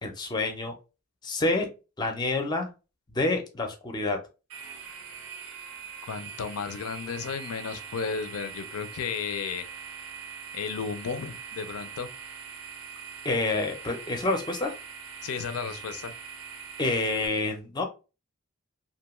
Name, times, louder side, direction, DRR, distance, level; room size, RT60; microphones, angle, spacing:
voice 1, 0.0-0.7 1.2-1.7 2.0-2.7 3.1-4.2 13.2-14.8 16.8-17.8, left 2 dB, 20° left, 0.4 m, -28 dB
sound 1, 4.5-17.3, right 6 dB, 80° right, 0.5 m, -42 dB
voice 2, 6.0-9.7 10.5-12.1 15.2-16.1, left 6 dB, 80° left, 0.4 m, -33 dB
2.6 x 2.2 x 2.9 m
head